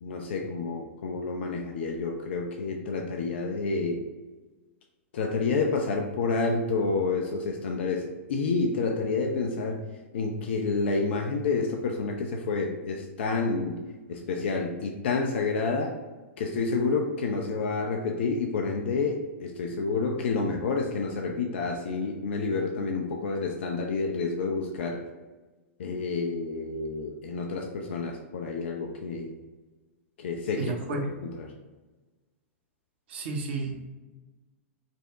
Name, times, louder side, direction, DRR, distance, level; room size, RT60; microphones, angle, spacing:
voice 1, 0.0-4.0 5.1-9.8 10.1-13.8 14.1-15.9 16.4-25.0 25.8-29.4 30.2-31.5, left 4 dB, 55° left, 2 dB, 0.5 m, -29 dB
voice 2, 30.6-31.1 33.1-33.8, right 3 dB, 50° right, 2 dB, 0.8 m, -32 dB
5.2 x 2.1 x 3.7 m, 1.2 s
figure-of-eight pair, 100°, 7 cm